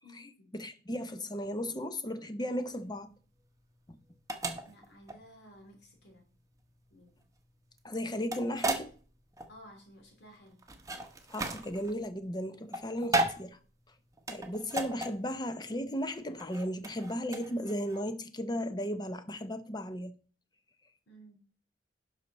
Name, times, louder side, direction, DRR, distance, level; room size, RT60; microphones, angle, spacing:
voice 1, 0.0-0.5 4.6-6.3 6.9-7.2 9.5-10.6 21.1-21.4, equal, 65° left, 3.4 m, -55 dB
voice 2, 0.5-3.1 3.9-4.0 7.8-8.9 11.3-13.6 14.3-20.1, equal, 25° left, 0.8 m, -35 dB
sound 1, 2.6-18.0, right 2 dB, 20° right, 1.0 m, -36 dB
11.5 x 5.7 x 4.2 m
head